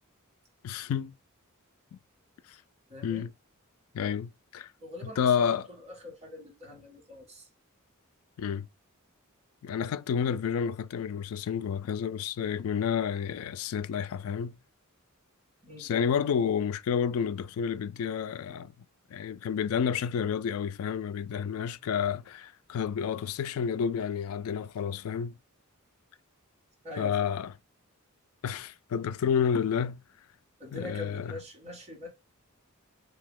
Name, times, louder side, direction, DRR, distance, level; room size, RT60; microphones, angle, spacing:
voice 1, 0.6-1.1 3.0-3.3 3.9-4.7 5.2-5.7 8.4-8.7 9.6-14.6 15.8-18.7 19.1-25.4 27.0-27.5 28.4-30.0 30.7-31.3, left 7 dB, 75° left, 0.3 m, -30 dB
voice 2, 2.9-3.3 4.8-7.5 15.6-15.9 26.8-27.4 30.6-32.1, left 2 dB, 30° right, 1.4 m, -44 dB
2.9 x 2.7 x 3.6 m
head